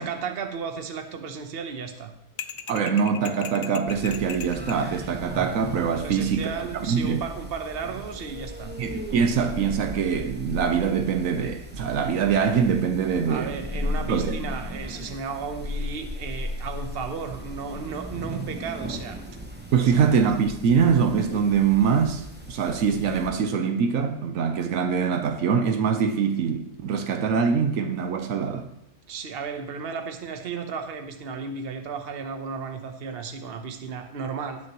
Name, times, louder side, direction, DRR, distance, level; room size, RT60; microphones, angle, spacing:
voice 1, 0.0-2.1 6.0-8.7 13.2-19.2 19.8-20.2 29.1-34.6, right 5 dB, 50° right, 1.1 m, -34 dB
sound 1, 2.4-4.8, left 7 dB, 65° left, 0.4 m, -37 dB
voice 2, 2.7-7.2 8.8-13.6 14.1-14.3 19.7-28.7, right 6 dB, 80° right, 1.1 m, -23 dB
sound 2, 3.9-23.3, left 1 dB, 10° right, 0.9 m, -36 dB
18.5 x 6.4 x 3.0 m
omnidirectional pair, 1.4 m